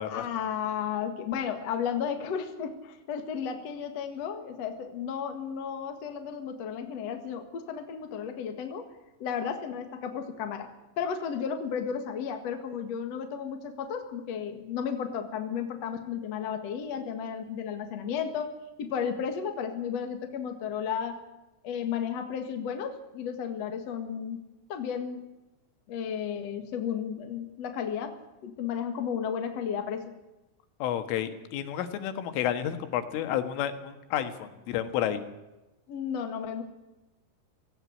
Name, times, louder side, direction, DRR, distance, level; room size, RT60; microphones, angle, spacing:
voice 1, 0.1-8.9 9.2-10.7 11.0-18.5 18.8-21.2 21.6-24.4 24.7-25.2 25.9-28.2 28.4-30.1 35.9-36.6, left 7 dB, 60° left, 6 dB, 1.8 m, -33 dB
voice 2, 30.8-35.2, left 10 dB, 80° left, 9 dB, 4.1 m, -31 dB
17.5 x 17.0 x 9.6 m, 1.0 s
omnidirectional pair, 5.6 m